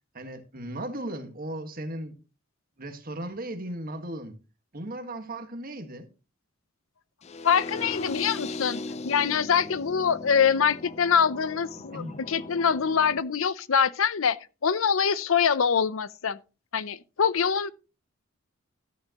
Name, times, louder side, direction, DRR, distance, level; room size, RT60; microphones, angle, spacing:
voice 1, 0.1-2.1 2.8-4.4 4.7-6.1 11.9-12.2, right 1 dB, 45° right, 1.6 m, -36 dB
sound 1, 7.2-13.2, left 2 dB, 30° left, 0.5 m, -38 dB
voice 2, 7.4-14.4 14.6-16.4 16.7-17.7, left 7 dB, 75° left, 0.6 m, -24 dB
13.5 x 9.2 x 3.0 m
head